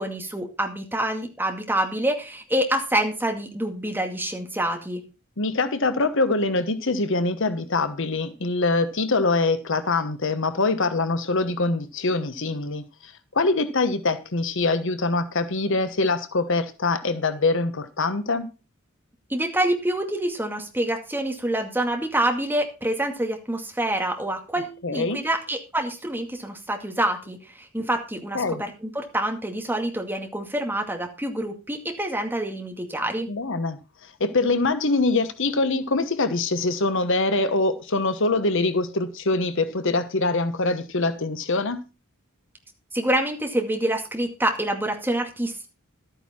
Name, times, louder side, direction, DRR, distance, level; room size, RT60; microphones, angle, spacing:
voice 1, 0.0-5.0 19.3-33.3 42.9-45.7, right 1 dB, 10° right, 2.2 m, -27 dB
voice 2, 5.4-18.5 24.8-25.2 28.3-28.6 33.3-41.8, left 3 dB, 60° left, 1.1 m, -24 dB
12.5 x 9.1 x 4.4 m
head